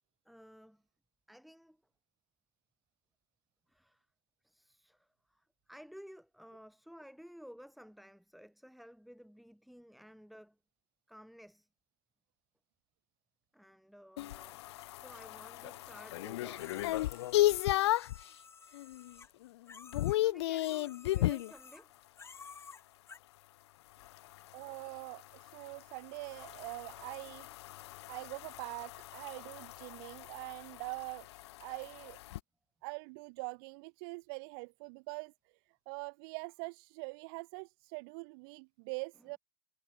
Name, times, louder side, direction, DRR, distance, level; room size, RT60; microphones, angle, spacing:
voice 1, 0.2-0.9 1.3-1.8 3.7-4.1 4.4-10.6 11.1-11.7 13.5-14.6 14.9-17.0 18.1-18.2 20.2-21.9 23.9-24.4, equal, ahead, 7.0 m, -55 dB
sound 1, 14.2-18.2 18.7-19.1 19.4-21.5 24.0-32.4, left 16 dB, 60° left, 0.7 m, -35 dB
sound 2, 16.6-20.2 20.5-21.9 22.1-23.2, left 5 dB, 15° left, 3.1 m, -54 dB
voice 2, 24.5-27.5 28.1-31.3 31.6-32.2 32.8-35.3 35.9-39.4, right 32 dB, 50° right, 2.2 m, -44 dB
hypercardioid pair, 105°, 16 cm